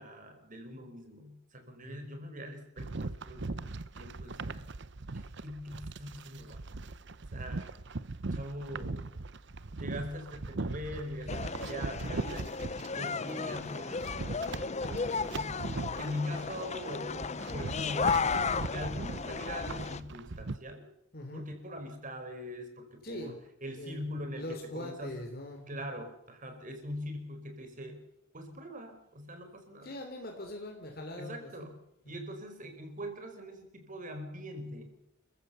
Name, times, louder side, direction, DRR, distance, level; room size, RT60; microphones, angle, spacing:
voice 1, 0.0-4.6 5.1-6.6 7.3-7.7 8.3-9.0 9.8-12.5 12.8-14.0 14.3-18.2 18.7-20.9 21.3-25.2 25.7-28.0 28.3-29.9 31.2-31.8 32.1-35.0, equal, 45° right, 6 dB, 4.8 m, -42 dB
sound 1, 2.8-12.9 13.3-20.6, right 3 dB, 65° right, 0.9 m, -39 dB
sound 2, 11.3-20.0, left 5 dB, 35° left, 0.8 m, -34 dB
voice 2, 21.1-21.5 23.0-23.4 23.7-25.7 29.8-31.7 32.1-32.3, left 1 dB, 50° left, 3 dB, 3.5 m, -42 dB
29.5 x 15.0 x 7.0 m, 0.83 s
head